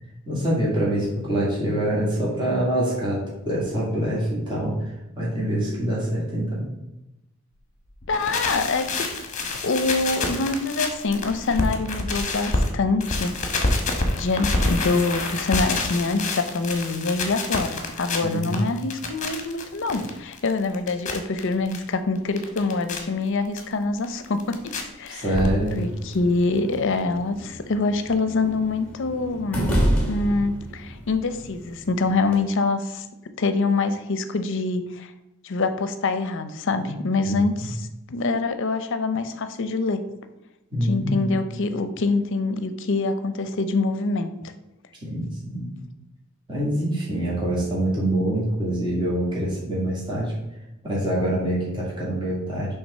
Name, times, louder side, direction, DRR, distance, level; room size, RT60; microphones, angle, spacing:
voice 1, 0.3-4.7 5.2-6.7 18.2-18.6 25.1-25.9 36.8-36.9 37.2-37.7 40.7-41.4 45.0-45.7 46.5-50.3 50.8-52.7, right 1 dB, 20° right, -6 dB, 1.8 m, -25 dB
sound 1, 8.0-12.7 13.0-21.8 22.1-23.0 23.6-23.7 24.0-24.8 25.1-25.8 26.1-26.2 26.4-26.5 26.7-26.8, left 2 dB, 35° left, 1.0 m, -27 dB
voice 2, 8.1-9.1 9.6-13.3 14.2-25.4 25.7-29.7 30.1-33.0 33.4-35.1 35.4-40.0 40.8-44.3, left 3 dB, 55° left, 10 dB, 0.6 m, -25 dB
sound 2, 25.7-32.4, equal, 5° left, 1.3 m, -29 dB
5.9 x 3.6 x 5.5 m, 0.94 s
head